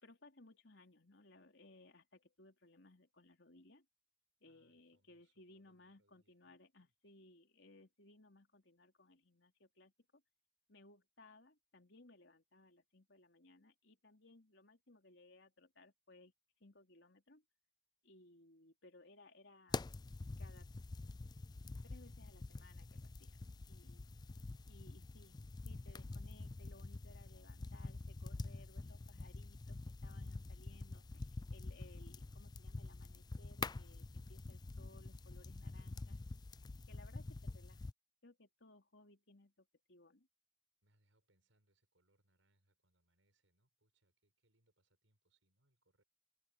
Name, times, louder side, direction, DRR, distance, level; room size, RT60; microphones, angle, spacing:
voice 1, 0.0-3.8 4.4-10.2 10.7-16.3 16.6-17.4 18.0-19.9 20.4-20.7 21.3-21.4 21.8-24.1 24.7-31.2 31.5-36.2 36.9-37.9 38.2-40.3, left 2 dB, 65° left, 4.1 m, -63 dB
voice 2, 4.5-6.9 23.9-24.9 40.8-46.0, right 1 dB, 85° right, 6.4 m, -81 dB
sound 1, 19.7-37.9, left 3 dB, 20° left, 0.3 m, -47 dB
head